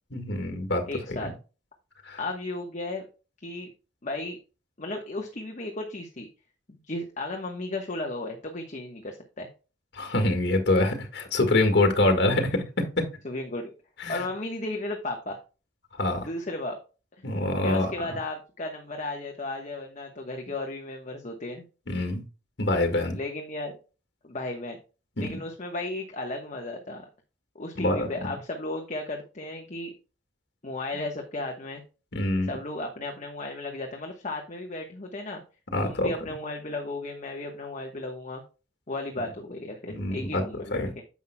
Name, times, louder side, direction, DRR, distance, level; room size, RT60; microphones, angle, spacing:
voice 1, 0.1-0.8 1.2-1.3 2.0-2.2 9.9-13.1 14.0-14.2 16.0-16.3 17.2-17.9 21.9-22.2 22.6-23.2 25.2-25.4 27.8-28.3 32.1-32.5 35.7-36.1 39.9-40.4 40.7-40.9, left 2 dB, 65° left, 5 dB, 1.6 m, -25 dB
voice 2, 0.9-1.3 2.2-3.1 3.4-3.7 4.0-4.4 4.8-6.3 6.7-9.5 13.2-13.7 14.1-15.4 16.2-16.8 17.2-17.3 17.6-21.6 23.1-23.7 24.2-24.8 25.2-27.0 27.5-29.9 30.6-31.8 32.5-35.4 35.8-38.4 38.9-41.0, left 2 dB, 40° left, 2 dB, 1.2 m, -34 dB
10.0 x 7.3 x 2.2 m, 0.33 s
head